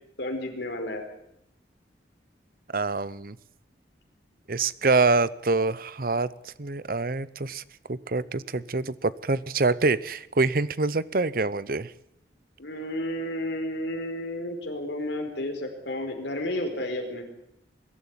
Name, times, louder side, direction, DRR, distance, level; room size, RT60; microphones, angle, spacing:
voice 1, 0.2-1.1 12.6-17.2, left 1 dB, 85° left, 4 dB, 5.1 m, -32 dB
voice 2, 2.7-3.4 4.5-7.6 7.9-11.9, right 3 dB, 55° right, 18 dB, 0.8 m, -25 dB
22.5 x 13.0 x 9.9 m, 0.77 s
head